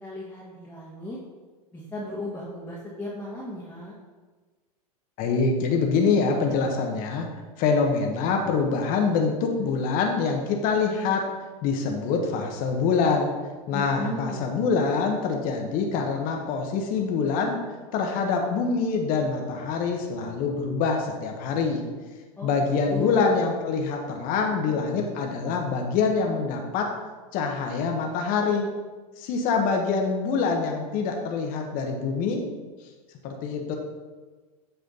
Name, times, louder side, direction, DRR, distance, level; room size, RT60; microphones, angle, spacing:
voice 1, 0.0-1.2 1.7-4.0 13.7-14.5 22.4-23.3, left 1 dB, 10° left, -7 dB, 1.5 m, -35 dB
voice 2, 5.2-7.3 7.6-11.2 11.6-13.3 13.7-17.6 17.9-21.8 22.4-26.9 27.3-28.7 29.2-32.4 33.2-33.8, left 5 dB, 45° left, 2 dB, 1.2 m, -25 dB
8.1 x 5.0 x 3.9 m, 1.3 s
hypercardioid pair, 105°, 19 cm